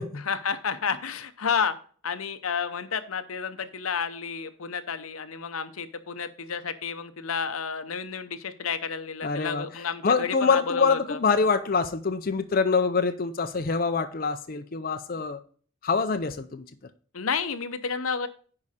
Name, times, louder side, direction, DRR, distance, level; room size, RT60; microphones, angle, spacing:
voice 1, 0.1-1.8 2.0-11.2 17.1-18.3, left 6 dB, 90° left, 0.8 m, -31 dB
voice 2, 9.2-9.7 10.0-15.4 15.8-16.6, left 4 dB, 45° left, 0.5 m, -25 dB
9.8 x 4.8 x 4.2 m
head